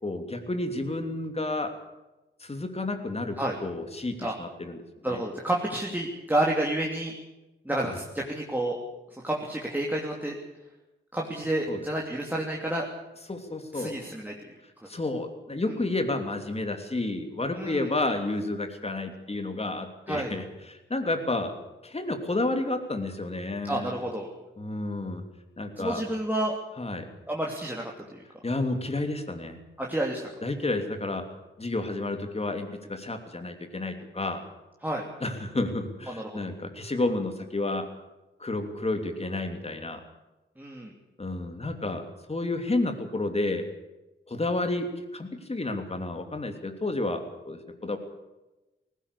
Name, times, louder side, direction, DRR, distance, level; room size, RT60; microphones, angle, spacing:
voice 1, 0.0-1.7 2.4-4.8 5.1-5.2 7.9-8.0 11.7-11.8 13.3-13.9 14.9-21.5 21.8-24.0 24.6-25.2 25.6-26.0 26.8-27.1 28.4-29.6 30.4-31.2 31.6-34.4 35.2-37.9 38.4-40.0 41.2-42.0 42.3-43.6 44.3-44.9 45.1-48.0, left 2 dB, 30° left, 6 dB, 3.1 m, -31 dB
voice 2, 5.0-7.1 7.6-8.8 9.1-10.4 11.1-12.9 13.7-14.5 15.7-15.8 17.5-17.9 20.1-20.3 23.6-24.3 25.8-26.6 27.3-28.2 29.8-30.3 34.8-35.0 36.1-36.5 40.6-40.9, right 1 dB, 10° right, -2 dB, 3.0 m, -30 dB
18.5 x 16.5 x 8.5 m, 1.0 s
cardioid pair, 70°, 20 cm